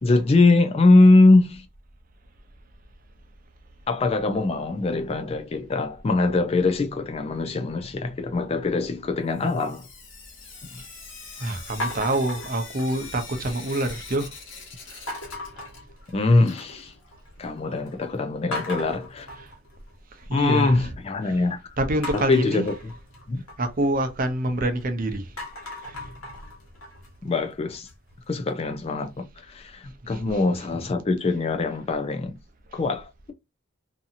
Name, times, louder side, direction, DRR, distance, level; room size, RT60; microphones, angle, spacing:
voice 1, 0.0-1.6 3.9-9.9 16.1-16.9 17.4-19.3 20.3-21.6 22.1-22.7 23.3-23.4 27.2-27.9 28.3-32.4 32.7-33.3, left 2 dB, 30° left, 0.3 m, -22 dB
Sink (filling or washing) / Drip, 9.3-16.1 16.3-18.3 19.5-19.6 19.9-20.0 20.2-20.3 23.2-23.3 23.8-23.9 24.4-24.5 25.1-25.2 25.9-26.0 26.8-26.9, left 4 dB, 60° left, 1.0 m, -44 dB
voice 2, 11.4-14.4 14.9-15.1 15.5-15.7 19.3-19.5 20.1-22.7 23.6-26.1 30.0-30.9 32.7-32.8, right 1 dB, 40° right, 0.6 m, -28 dB
sound 1, 11.8-13.3 13.7-14.2 15.1-16.6 16.9-17.5 17.9-18.0 18.5-20.6 22.0-24.8 25.2-28.1, left 1 dB, 90° left, 1.1 m, -38 dB
2.7 x 2.7 x 2.5 m
head